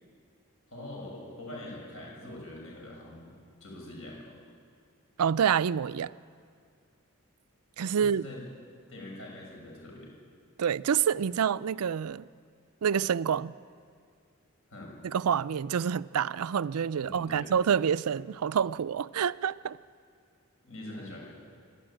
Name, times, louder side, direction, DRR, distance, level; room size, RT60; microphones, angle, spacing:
voice 1, 0.7-4.3 8.0-8.4 8.9-10.1 14.7-14.9 17.0-17.5 20.6-21.2, left 1 dB, 65° left, 6.9 m, -44 dB
voice 2, 5.2-6.1 7.8-8.3 10.6-12.3 12.8-13.5 15.0-19.8, right 7 dB, 90° right, 0.4 m, -27 dB
25.5 x 12.5 x 8.9 m
head